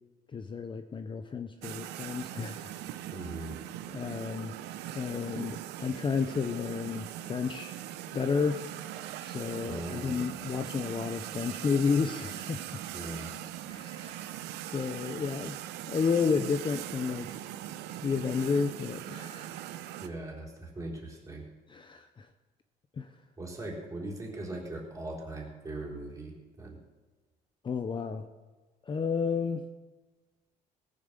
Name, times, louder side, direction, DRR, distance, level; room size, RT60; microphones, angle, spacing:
voice 1, 0.3-2.8 3.9-4.5 4.9-7.8 8.1-8.6 9.2-12.8 13.7-14.3 14.7-15.6 15.9-17.3 18.0-19.5 21.7-22.3 23.0-23.1 27.6-28.3 28.9-29.6, left 5 dB, 30° left, 8 dB, 0.7 m, -31 dB
sound 1, 1.6-20.1, right 12 dB, 90° right, 0.8 m, -41 dB
voice 2, 3.1-3.6 9.6-10.3 12.9-13.4 20.0-21.5 23.4-26.8, right 2 dB, 20° right, -2 dB, 3.9 m, -40 dB
18.0 x 7.3 x 6.7 m, 1.3 s
cardioid pair, 110°, 17 cm